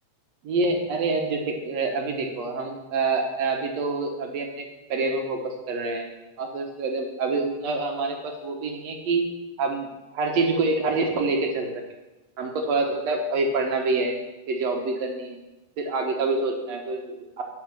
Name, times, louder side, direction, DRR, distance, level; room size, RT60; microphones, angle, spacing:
voice 1, 0.4-6.1 6.4-9.2 9.6-11.8 12.4-14.1 14.5-15.4 15.8-17.4, right 3 dB, 60° right, 3 dB, 2.3 m, -26 dB
10.5 x 5.5 x 7.5 m, 1.0 s
omnidirectional pair, 3.6 m